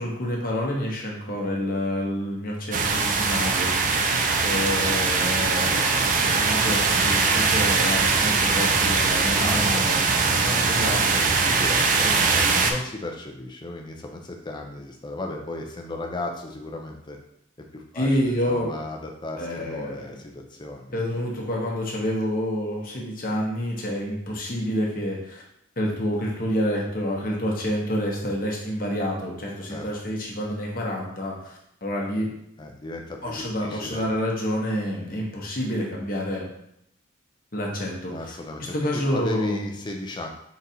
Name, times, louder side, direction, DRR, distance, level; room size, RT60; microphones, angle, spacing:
voice 1, 0.0-4.0 4.4-10.0 10.7-11.3 17.9-18.7 19.4-20.2 20.9-25.4 25.8-32.3 33.2-36.5 37.5-38.3 38.7-39.7, equal, 45° left, -2 dB, 0.9 m, -28 dB
sound 1, 2.7-12.7, right 4 dB, 40° right, 0.4 m, -21 dB
voice 2, 4.3-5.0 9.2-9.9 10.2-11.1 11.5-17.2 17.7-21.2 29.7-29.9 32.6-34.0 38.1-40.3, left 2 dB, 25° left, 2 dB, 0.4 m, -35 dB
3.9 x 2.5 x 4.2 m, 0.78 s
head